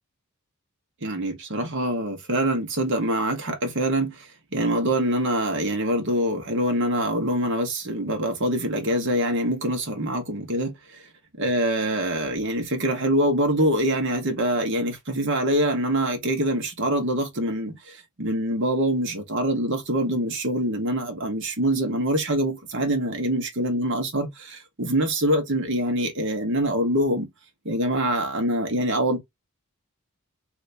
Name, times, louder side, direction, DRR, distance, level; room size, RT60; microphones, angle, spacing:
voice 1, 1.0-11.0 11.4-27.3 27.6-29.2, right 1 dB, 55° right, 1.2 m, -25 dB
3.4 x 2.9 x 2.6 m
head